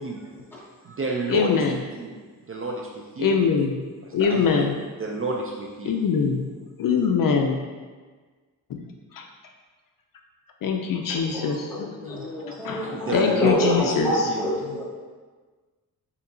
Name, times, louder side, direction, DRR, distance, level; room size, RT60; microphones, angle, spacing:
voice 1, 0.5-1.5 2.0-2.2 2.5-2.9 3.2-3.4 4.2-4.6 5.0-6.0 12.8-14.5, right 3 dB, 35° right, -1 dB, 0.5 m, -30 dB
voice 2, 1.3-1.8 3.2-3.8 4.1-4.7 5.8-6.5 6.8-7.6 8.7-8.8 9.1-9.2 10.6-12.2 12.6-14.1, left 6 dB, 60° left, 3 dB, 0.5 m, -23 dB
voice 3, 10.9-11.6 12.1-14.8, left 1 dB, 5° left, -7 dB, 1.1 m, -27 dB
6.7 x 2.8 x 2.6 m, 1.4 s
wide cardioid pair, 125°, 37 cm